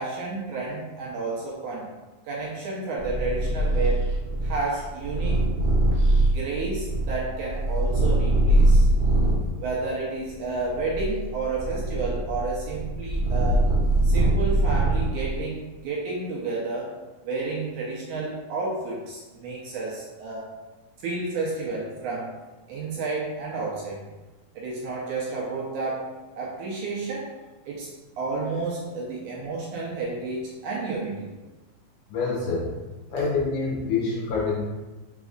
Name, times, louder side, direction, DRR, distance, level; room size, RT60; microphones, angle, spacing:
voice 1, 0.0-1.9 2.3-4.1 4.4-5.5 6.3-8.9 9.5-13.6 14.0-16.9 17.2-20.5 21.0-22.3 22.7-24.0 24.6-26.1 26.4-27.3 27.7-27.9 28.2-31.3, right 3 dB, 75° right, -4 dB, 2.0 m, -31 dB
Purr, 3.0-9.5 10.2-15.4, right 1 dB, 45° right, 1.4 m, -22 dB
voice 2, 32.1-32.8 33.1-34.6, left 4 dB, 75° left, -3 dB, 2.1 m, -26 dB
5.2 x 4.0 x 2.4 m, 1.2 s
omnidirectional pair, 4.0 m